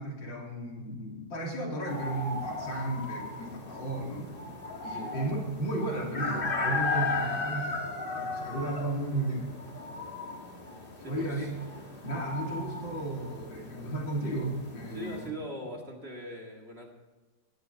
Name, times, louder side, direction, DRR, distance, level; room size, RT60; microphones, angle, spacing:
voice 1, 0.0-4.4 4.8-7.8 8.1-9.5 11.0-11.5 12.0-15.3, right 2 dB, 75° left, -1 dB, 3.7 m, -34 dB
sound 1, 1.9-15.3, left 3 dB, 30° left, 1.8 m, -36 dB
voice 2, 11.0-11.5 14.9-16.9, right 1 dB, 35° right, 1 dB, 2.2 m, -41 dB
18.5 x 10.5 x 4.1 m, 1.3 s
omnidirectional pair, 2.0 m